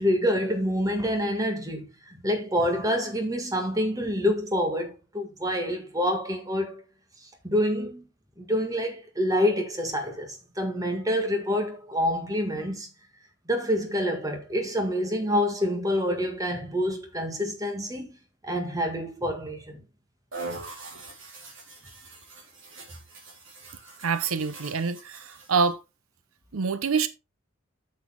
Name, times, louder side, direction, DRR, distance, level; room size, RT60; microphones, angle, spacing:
voice 1, 0.0-6.8 7.4-8.0 8.4-12.9 13.5-18.1 18.4-19.8, equal, 15° right, 1.6 m, -27 dB
sound 1, 20.3-25.7, right 3 dB, 65° right, 3.9 m, -43 dB
voice 2, 24.0-25.8 26.5-27.1, right 5 dB, 85° right, 0.7 m, -26 dB
8.3 x 6.8 x 3.7 m
head